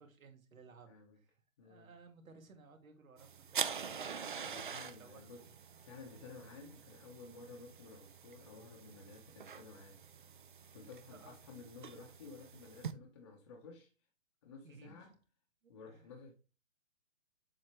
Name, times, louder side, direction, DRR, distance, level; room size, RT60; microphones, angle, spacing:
voice 1, 0.0-4.5 4.8-5.5 5.9-6.0 11.1-11.3 14.6-15.2 15.6-16.1, right 4 dB, 90° right, 2.1 m, -59 dB
voice 2, 0.9-1.2 1.6-1.9 4.4-5.5 5.8-10.0 10.7-13.9 14.4-15.1 15.7-16.3, left 4 dB, 20° left, 0.7 m, -53 dB
sound 1, 3.2-12.9, right 7 dB, 40° right, 0.4 m, -45 dB
7.3 x 4.8 x 3.2 m
hypercardioid pair, 165°, 40 cm